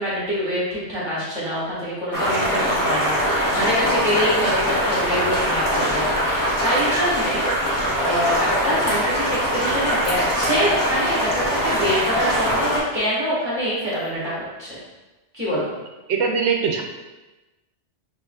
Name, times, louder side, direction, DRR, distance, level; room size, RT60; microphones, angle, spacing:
voice 1, 0.0-7.5 8.0-14.8 15.3-15.7, equal, 20° right, -9 dB, 1.4 m, -25 dB
sound 1, 2.1-12.8, equal, 25° left, 0.5 m, -22 dB
sound 2, 11.9-12.1 13.8-14.1, left 3 dB, 80° left, 1.0 m, -38 dB
voice 2, 16.1-16.8, right 5 dB, 70° right, 3 dB, 0.8 m, -21 dB
4.7 x 3.2 x 2.3 m, 1.1 s
omnidirectional pair, 1.2 m